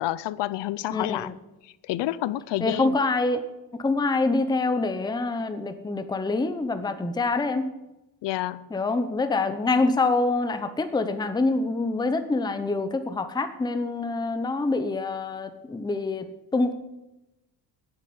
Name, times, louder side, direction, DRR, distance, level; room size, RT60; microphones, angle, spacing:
voice 1, 0.0-1.3 1.6-3.0 8.2-8.7, left 15 dB, 70° left, 18 dB, 0.6 m, -29 dB
voice 2, 0.9-1.3 2.6-3.4 3.8-7.7 8.7-16.7, left 3 dB, 10° left, 9 dB, 0.7 m, -26 dB
9.7 x 8.0 x 8.5 m, 0.98 s
cardioid pair, 155°, 44 cm